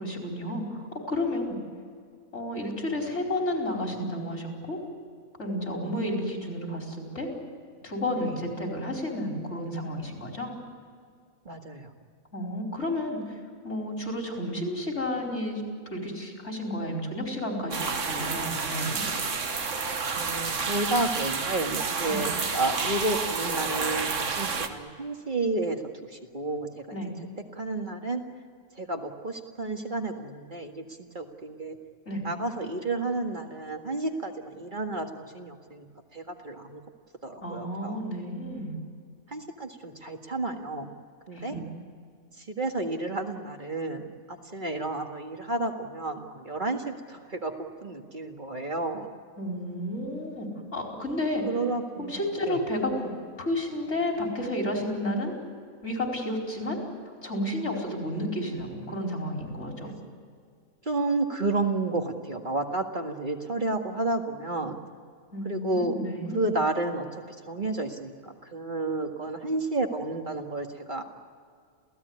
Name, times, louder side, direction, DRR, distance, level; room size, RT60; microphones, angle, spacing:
voice 1, 0.0-1.6 2.3-4.8 5.4-7.3 7.8-10.5 12.3-13.4 13.6-15.6 15.9-19.0 22.1-22.2 26.9-27.1 32.1-32.2 37.4-38.8 41.3-41.6 49.4-51.5 52.0-53.1 53.4-55.3 55.8-56.8 57.2-59.9 65.3-66.5, left 1 dB, 55° left, 1 dB, 5.0 m, -31 dB
voice 2, 11.5-11.9 20.2-27.0 27.5-28.2 28.8-31.8 32.2-35.9 36.1-36.8 37.2-38.0 39.3-41.0 41.3-41.6 42.4-47.5 47.8-49.1 51.5-52.1 52.4-52.6 60.8-64.8 65.4-66.0 66.3-67.1 67.5-71.0, right 2 dB, 35° right, 3 dB, 2.0 m, -31 dB
sound 1, 17.7-24.7, right 5 dB, 65° right, 1.8 m, -30 dB
28.5 x 17.0 x 9.6 m, 2.1 s
omnidirectional pair, 1.4 m